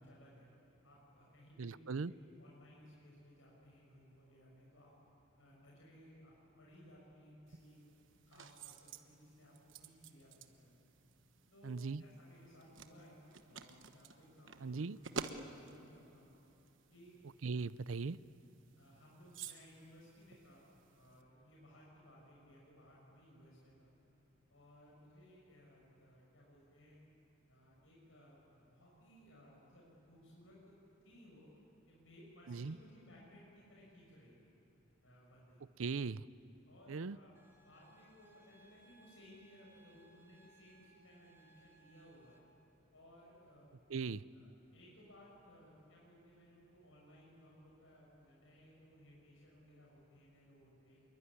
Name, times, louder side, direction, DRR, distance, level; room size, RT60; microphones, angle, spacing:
voice 1, 0.0-0.5 0.8-4.9 5.4-7.8 8.2-10.7 11.5-13.2 13.5-14.8 15.2-16.3 16.9-17.1 18.7-20.6 20.9-23.9 24.5-27.0 27.5-30.8 31.0-31.5 31.9-34.5 35.0-35.6 36.6-37.3 37.6-42.4 42.9-43.7 44.3-51.0, equal, 80° left, -4 dB, 6.8 m, -61 dB
voice 2, 1.6-2.1 11.6-12.0 14.6-15.0 17.4-18.2 32.5-32.8 35.8-36.3 36.9-37.2 43.9-44.2, right 4 dB, 90° right, 18 dB, 0.6 m, -39 dB
sound 1, 7.5-21.2, right 4 dB, 70° right, 1.2 m, -52 dB
sound 2, 37.3-42.4, right 2 dB, 15° right, 2.4 m, -67 dB
26.5 x 22.5 x 9.8 m, 2.9 s
head